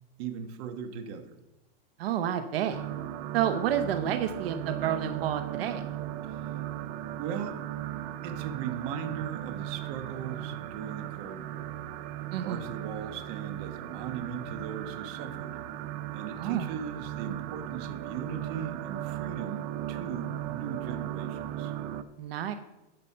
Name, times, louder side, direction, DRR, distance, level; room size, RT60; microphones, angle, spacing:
voice 1, 0.2-1.3 6.2-6.5 7.2-7.6 8.2-11.8 12.4-15.6 16.1-21.7, right 7 dB, 45° right, 7 dB, 1.2 m, -38 dB
voice 2, 2.0-2.8 3.3-5.8 12.3-12.7 16.4-16.7 22.2-22.5, right 10 dB, 80° right, 9 dB, 0.8 m, -30 dB
sound 1, 2.7-22.0, right 12 dB, 30° right, 0.3 m, -37 dB
12.0 x 5.4 x 5.5 m, 0.96 s
supercardioid pair, 160°, 29 cm